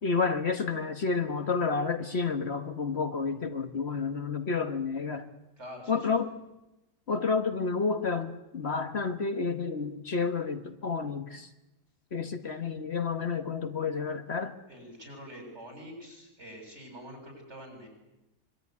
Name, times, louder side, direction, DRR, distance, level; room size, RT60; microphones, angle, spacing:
voice 1, 0.0-5.3 5.9-6.3 7.1-11.5 12.1-14.5, left 4 dB, 50° left, 8 dB, 1.6 m, -30 dB
voice 2, 5.6-6.2 14.7-17.9, equal, 50° right, 3 dB, 8.3 m, -46 dB
25.5 x 24.0 x 9.6 m, 0.97 s
omnidirectional pair, 1.5 m